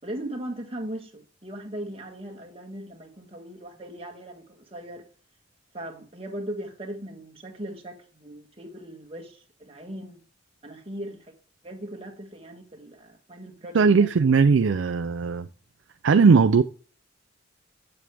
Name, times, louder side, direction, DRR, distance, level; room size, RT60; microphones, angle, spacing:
voice 1, 0.0-5.1 5.7-10.2 10.6-11.3 11.6-14.1 14.4-14.5, right 1 dB, 30° right, 1.6 m, -39 dB
voice 2, 13.7-15.5 16.0-16.6, right 5 dB, 75° right, 0.4 m, -18 dB
8.2 x 7.6 x 3.5 m
head